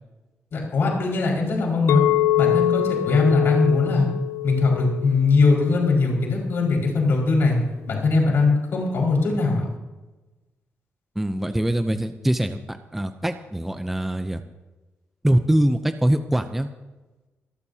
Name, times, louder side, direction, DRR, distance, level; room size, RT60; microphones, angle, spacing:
voice 1, 0.5-2.0 2.4-4.1 4.4-7.6 7.9-9.6, left 3 dB, 55° left, -2 dB, 5.2 m, -20 dB
Chink clink, 1.9-6.1, left 12 dB, 75° left, 0.4 m, -24 dB
voice 2, 11.2-14.4 15.2-16.7, right 1 dB, 5° right, 8 dB, 0.5 m, -23 dB
25.5 x 12.0 x 2.8 m, 1.1 s
wide cardioid pair, 165°, 5 cm